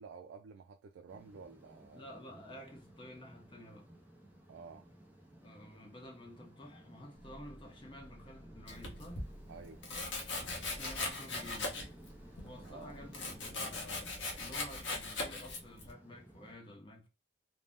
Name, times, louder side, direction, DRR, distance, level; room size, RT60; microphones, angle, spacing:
voice 1, 0.0-2.1 4.5-4.9 9.5-9.8 12.6-13.4, right 5 dB, 85° right, 0.3 m, -52 dB
sound 1, 1.1-16.6, right 1 dB, 10° right, 0.5 m, -56 dB
voice 2, 1.9-3.9 5.4-9.3 10.3-11.8 12.4-17.1, left 1 dB, 25° left, 0.7 m, -51 dB
sound 2, 7.1-13.0, right 1 dB, 30° right, 1.2 m, -56 dB
Domestic sounds home sounds, 8.7-9.3 9.8-12.1 12.4-15.9, left 3 dB, 70° left, 0.9 m, -39 dB
2.6 x 2.0 x 3.4 m
head